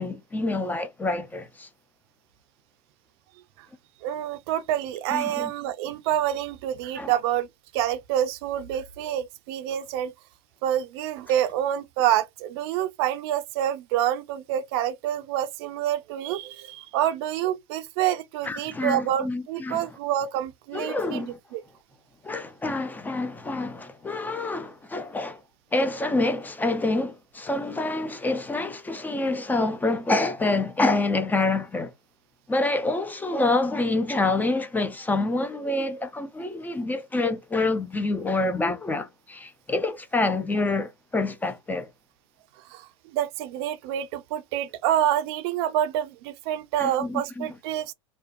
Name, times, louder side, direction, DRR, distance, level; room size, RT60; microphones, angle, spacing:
voice 1, 0.0-1.7 5.1-5.5 7.0-7.1 18.4-19.9 20.7-21.4 22.2-25.4 25.7-31.9 32.5-41.9 46.8-47.5, left 2 dB, 10° left, 0.4 m, -27 dB
voice 2, 4.0-7.5 7.7-10.1 10.6-21.2 21.5-21.6 42.7-47.9, right 11 dB, 55° right, 0.5 m, -27 dB
2.6 x 2.1 x 2.5 m
hypercardioid pair, 100°, 16 cm